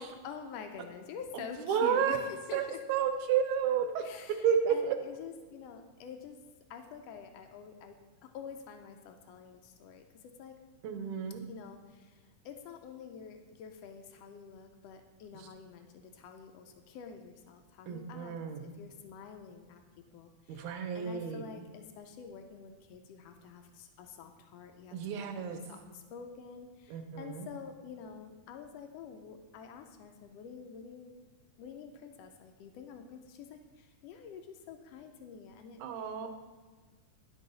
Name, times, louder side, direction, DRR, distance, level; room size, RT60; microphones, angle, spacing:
voice 1, 0.0-2.2 2.5-2.8 4.0-4.4 4.7-6.4 6.7-8.0 8.3-10.0 10.4-10.5 11.5-18.3 18.6-19.8 20.1-25.0 25.4-31.1 31.6-35.8, left 6 dB, 85° left, 5 dB, 1.4 m, -47 dB
voice 2, 1.3-2.2 2.5-2.6 2.9-4.0 4.4-5.0 10.8-11.5 15.3-15.5 17.9-18.6 20.5-21.5 24.9-25.6 26.9-27.5 35.8-36.3, right 8 dB, 75° right, 7 dB, 2.0 m, -31 dB
10.5 x 5.4 x 4.0 m, 1.4 s
omnidirectional pair, 3.4 m